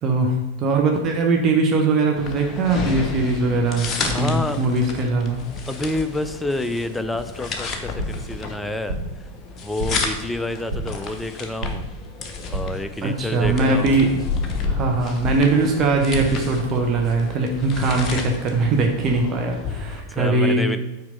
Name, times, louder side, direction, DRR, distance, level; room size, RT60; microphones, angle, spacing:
voice 1, 0.0-5.4 13.0-14.1 14.7-20.6, right 3 dB, 30° right, 2 dB, 0.9 m, -21 dB
sound 1, 2.2-20.0, left 4 dB, 25° left, 0.9 m, -32 dB
voice 2, 4.1-4.6 5.7-9.0 9.6-11.9 12.5-14.0 14.6-15.1 20.1-20.8, left 2 dB, 5° left, 9 dB, 0.5 m, -28 dB
sound 2, 7.8-8.3 8.6-9.2 9.5-10.1 10.4-11.0 11.3-12.0 12.3-12.9 13.1-14.7 14.9-15.6 15.8-16.6, right 2 dB, 75° right, 1.6 m, -31 dB
6.0 x 4.5 x 5.3 m, 0.99 s
figure-of-eight pair, 90°, 0 cm